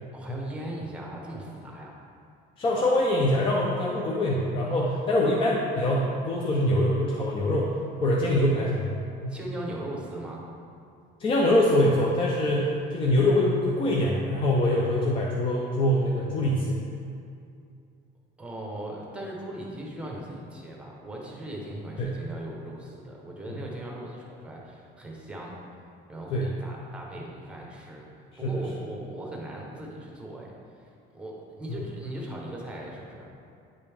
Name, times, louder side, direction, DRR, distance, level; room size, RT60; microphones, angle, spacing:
voice 1, 0.1-1.9 9.3-10.4 18.4-25.6 26.1-28.1 28.4-30.5 30.8-30.9 31.1-33.3, right 1 dB, 5° right, -2 dB, 0.9 m, -38 dB
voice 2, 2.6-9.4 11.2-16.8 22.0-22.2 23.5-23.6 26.3-26.5 28.4-28.6 31.7-31.8, left 1 dB, 25° left, -3 dB, 0.6 m, -24 dB
9.6 x 5.2 x 3.5 m, 2.4 s
cardioid pair, 180°, 20 cm